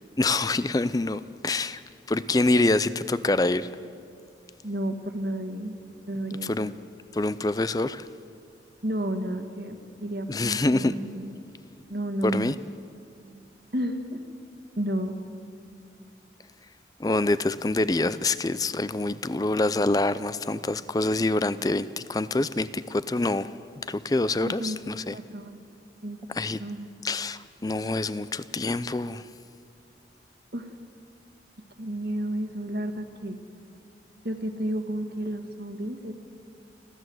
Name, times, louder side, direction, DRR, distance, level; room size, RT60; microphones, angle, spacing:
voice 1, 0.2-1.8 2.1-3.7 6.4-6.7 7.1-8.1 10.3-11.0 12.2-12.6 17.0-23.5 23.9-25.2 26.3-26.6 27.0-29.3, left 2 dB, 20° left, 0.4 m, -26 dB
voice 2, 4.6-5.8 6.1-6.7 8.8-11.4 11.9-12.5 13.7-14.2 14.8-15.2 24.4-24.8 25.1-25.6 26.0-26.3 26.6-26.9 30.5-30.7 31.8-33.4 34.2-36.1, right 1 dB, 60° right, 1.8 m, -31 dB
30.0 x 12.0 x 7.9 m
head